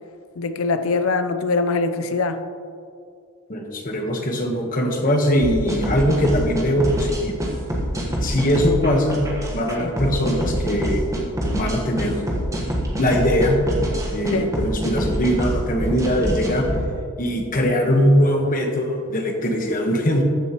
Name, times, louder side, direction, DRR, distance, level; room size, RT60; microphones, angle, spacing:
voice 1, 0.4-2.4 9.8-9.9 14.3-14.5, left 3 dB, 65° left, 10 dB, 0.5 m, -22 dB
voice 2, 3.5-7.4 8.2-9.2 9.5-11.1 11.5-12.2 13.0-13.6 14.1-16.7 17.2-20.2, equal, 40° left, 2 dB, 1.2 m, -21 dB
sound 1, 5.4-16.8, equal, 15° right, 1.2 m, -25 dB
14.5 x 7.2 x 3.0 m, 2.4 s
head